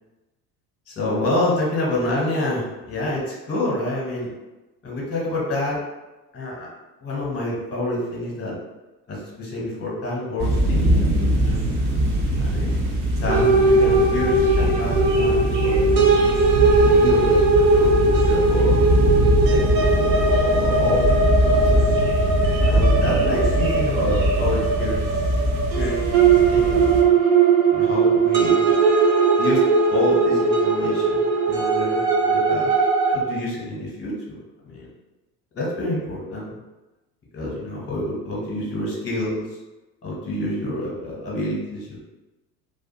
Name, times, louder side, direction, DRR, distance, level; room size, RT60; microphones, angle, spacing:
voice 1, 0.9-4.3 4.8-5.8 6.3-6.7 7.0-8.5 9.1-11.9 12.3-12.8 13.2-16.3 16.9-21.9 22.6-25.1 25.7-26.2 26.5-27.2 27.7-28.8 29.4-32.7 33.1-34.4 34.6-34.9 35.5-36.5 37.3-39.5 40.0-42.0, left 1 dB, 20° left, -4 dB, 0.7 m, -28 dB
sound 1, 10.4-27.0, right 1 dB, 30° right, 0.4 m, -22 dB
sound 2, 13.3-33.2, right 3 dB, 75° right, 0.6 m, -19 dB
2.4 x 2.3 x 2.7 m, 1.1 s
figure-of-eight pair, 70°, 50 cm